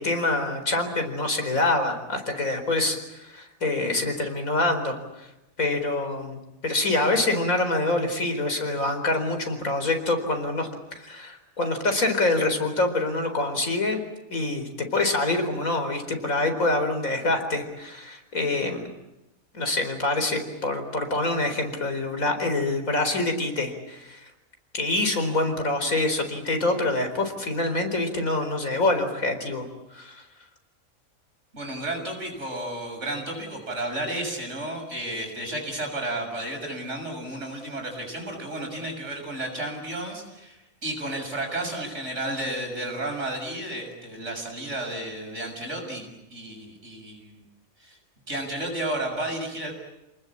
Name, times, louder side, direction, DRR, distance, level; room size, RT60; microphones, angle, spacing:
voice 1, 0.0-5.3 5.6-14.0 14.3-18.9 19.5-24.2 24.7-29.6 29.9-30.2, left 2 dB, 90° left, 6 dB, 4.8 m, -26 dB
voice 2, 31.5-47.4 47.8-48.0 48.3-49.7, right 1 dB, 60° right, 3 dB, 7.2 m, -32 dB
29.0 x 20.0 x 8.6 m, 0.96 s
omnidirectional pair, 1.4 m